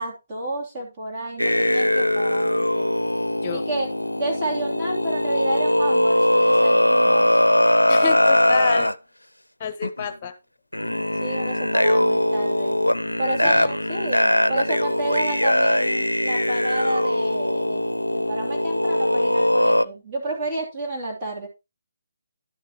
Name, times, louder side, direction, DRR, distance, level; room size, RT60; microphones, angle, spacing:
voice 1, 0.0-2.9 3.5-3.9 4.2-7.3 11.2-12.8 13.2-17.8 18.1-21.5, right 2 dB, 20° right, -4 dB, 3.2 m, -30 dB
sound 1, 1.4-8.9 9.8-10.0 10.7-19.8, left 1 dB, 85° left, 0.4 m, -21 dB
voice 2, 7.9-8.9 9.6-10.3 13.4-13.7, left 7 dB, 30° left, 11 dB, 1.0 m, -28 dB
11.5 x 7.6 x 3.0 m, 0.24 s
figure-of-eight pair, 145°, 0 cm